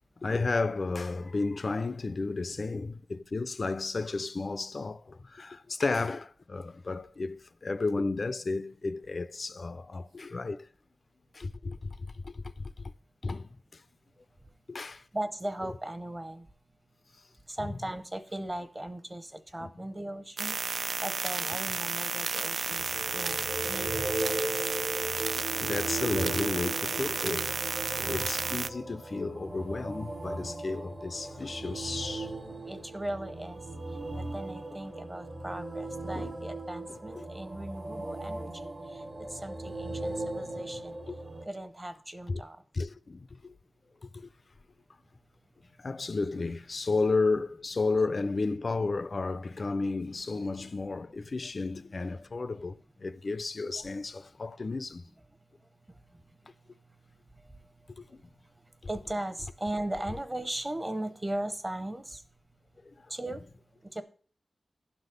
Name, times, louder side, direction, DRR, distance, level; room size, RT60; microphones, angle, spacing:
voice 1, 0.2-10.7 11.3-12.9 13.2-13.8 14.7-15.0 17.6-17.7 19.6-19.7 23.1-23.2 23.9-24.2 24.6-25.0 25.4-27.6 27.9-32.6 36.1-36.3 36.9-37.3 41.1-41.2 42.3-42.4 42.7-43.5 44.0-44.3 45.8-55.1 57.9-58.2 62.9-63.0, left 3 dB, 50° left, 0.4 m, -33 dB
voice 2, 15.1-16.5 17.5-24.7 32.6-33.7 34.2-41.0 41.5-42.6 53.8-53.9 55.4-62.2 63.1-64.0, right 1 dB, 20° right, 0.9 m, -39 dB
sound 1, 20.4-28.7, right 4 dB, 70° right, 0.3 m, -32 dB
sound 2, 22.7-41.4, right 2 dB, 50° right, 1.4 m, -38 dB
12.0 x 4.1 x 6.6 m
wide cardioid pair, 115°, 0 cm